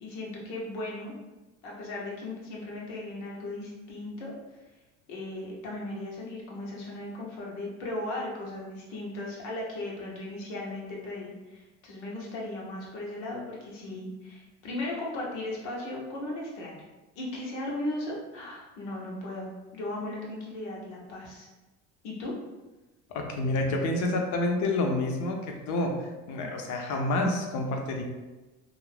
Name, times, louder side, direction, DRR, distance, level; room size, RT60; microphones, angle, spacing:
voice 1, 0.0-1.1 1.6-4.3 5.1-16.8 17.2-21.5 22.0-22.3, left 1 dB, 85° left, -3 dB, 0.9 m, -37 dB
voice 2, 23.1-28.0, left 2 dB, 60° left, 2 dB, 0.7 m, -28 dB
2.5 x 2.4 x 3.3 m, 1.1 s
hypercardioid pair, 70°, 35 cm